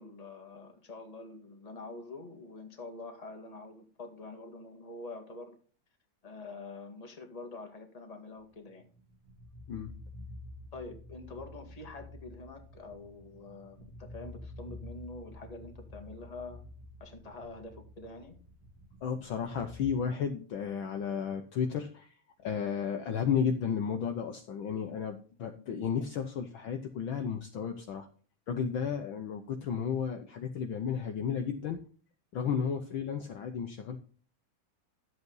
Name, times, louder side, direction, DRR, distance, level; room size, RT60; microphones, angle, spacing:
voice 1, 0.0-5.6 6.2-8.9 10.7-16.6 17.0-18.4, left 3 dB, 15° left, 4 dB, 1.3 m, -46 dB
sound 1, 8.8-19.9, left 1 dB, 45° right, 2.3 m, -49 dB
voice 2, 19.0-28.1 28.5-31.8 32.3-34.0, left 7 dB, 75° left, 5 dB, 1.1 m, -33 dB
12.0 x 8.0 x 3.9 m, 0.41 s
omnidirectional pair, 3.4 m